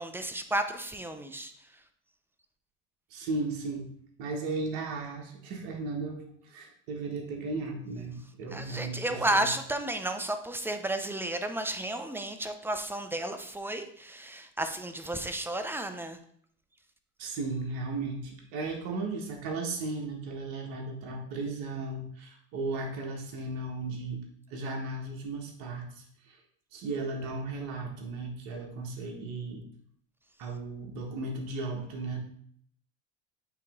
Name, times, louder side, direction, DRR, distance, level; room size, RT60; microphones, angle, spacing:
voice 1, 0.0-1.5 8.5-16.2, right 1 dB, 5° right, 8 dB, 0.6 m, -32 dB
voice 2, 3.1-3.9 4.2-6.2 6.4-9.5 17.2-24.2 24.5-26.0 26.7-29.6 30.4-32.2, right 3 dB, 65° right, 1 dB, 1.4 m, -35 dB
8.4 x 3.0 x 3.6 m, 0.62 s
supercardioid pair, 90°, 36 cm